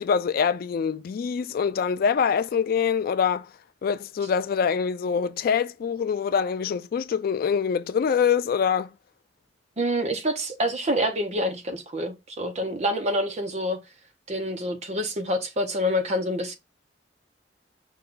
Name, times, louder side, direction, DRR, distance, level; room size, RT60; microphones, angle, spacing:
voice 1, 0.0-3.5 3.8-8.9, left 6 dB, 55° left, 0.3 m, -24 dB
voice 2, 9.8-13.8 14.3-16.5, equal, 40° right, 0.8 m, -27 dB
5.4 x 2.3 x 3.7 m
head